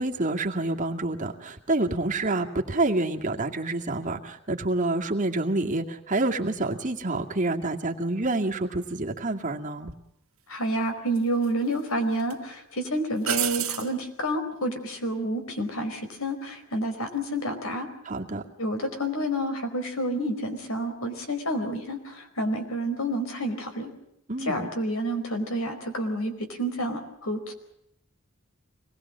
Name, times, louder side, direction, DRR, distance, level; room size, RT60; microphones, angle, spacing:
voice 1, 0.0-9.9 18.0-18.4 24.3-24.7, right 2 dB, 35° right, 2 dB, 2.2 m, -28 dB
sound 1, 9.9-10.0 11.1-11.8 12.2-12.3 13.2-13.9 17.0-17.4, right 12 dB, 80° right, 2.2 m, -30 dB
voice 2, 10.5-17.9 18.6-23.9 24.4-27.5, equal, 80° left, 6 dB, 4.8 m, -29 dB
25.5 x 20.0 x 7.5 m, 0.77 s
head